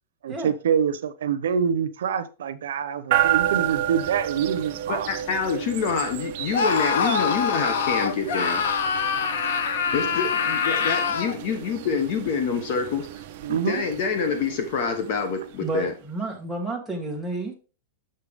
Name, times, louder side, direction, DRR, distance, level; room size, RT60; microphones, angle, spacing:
voice 1, 0.2-5.1 9.9-10.0 13.4-13.8, right 7 dB, 90° right, 0.8 m, -26 dB
sound 1, 3.1-16.1, right 13 dB, 40° right, 0.7 m, -31 dB
voice 2, 4.9-8.6 9.9-13.1 13.5-15.9, left 5 dB, 40° left, 1.0 m, -26 dB
Screaming, 6.5-11.4, left 6 dB, 75° left, 0.9 m, -24 dB
voice 3, 15.6-17.6, right 2 dB, ahead, 1.3 m, -30 dB
6.6 x 5.7 x 3.5 m
supercardioid pair, 170°, 0 cm